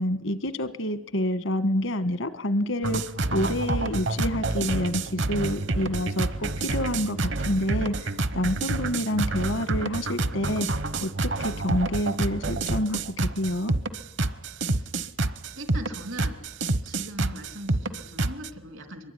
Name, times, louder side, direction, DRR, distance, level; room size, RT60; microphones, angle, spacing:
voice 1, 0.0-3.0 3.3-7.9 8.3-10.7 11.0-13.7, left 1 dB, 80° left, 13 dB, 1.4 m, -28 dB
sound 1, 2.8-18.5, right 2 dB, 65° right, 0.9 m, -28 dB
voice 2, 14.5-15.0 15.5-16.4 16.8-19.1, right 1 dB, 85° right, 7 dB, 3.3 m, -40 dB
23.5 x 22.0 x 10.0 m, 1.1 s
head